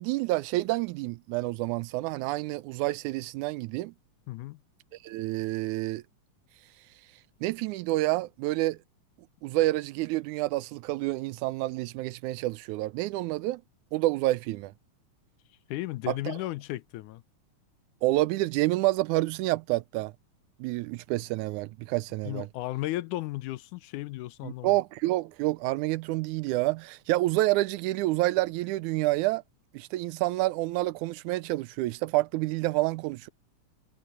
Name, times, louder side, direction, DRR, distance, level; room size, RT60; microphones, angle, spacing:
voice 1, 0.0-3.9 5.0-6.0 7.4-8.8 9.4-13.6 13.9-14.7 16.1-16.4 18.0-20.1 20.6-22.5 24.4-29.4 29.7-33.3, right 18 dB, 80° right, 2.0 m, -28 dB
voice 2, 4.3-4.6 15.7-17.2 22.3-24.8, left 17 dB, 85° left, 2.2 m, -34 dB
omnidirectional pair, 3.5 m